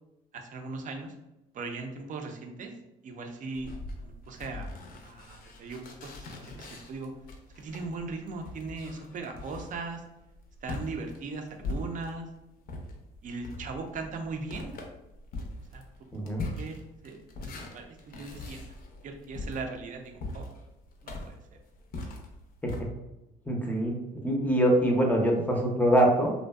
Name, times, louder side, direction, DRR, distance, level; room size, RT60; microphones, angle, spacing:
voice 1, 0.3-1.1 1.5-2.7 3.0-3.7 4.0-4.7 5.0-7.1 7.6-10.0 10.6-12.3 13.2-14.7 15.7-15.8 16.1-16.3 16.6-18.6 19.0-20.5 21.0-21.6, right 3 dB, 45° right, 4 dB, 0.5 m, -39 dB
sound 1, 3.5-12.3 12.6-22.8, left 2 dB, 55° left, 0.5 m, -41 dB
voice 2, 16.1-16.4 22.6-22.7 23.5-23.9 24.2-26.3, right 1 dB, 10° left, 1 dB, 0.6 m, -24 dB
2.5 x 2.2 x 2.2 m, 0.93 s
supercardioid pair, 75°, 19 cm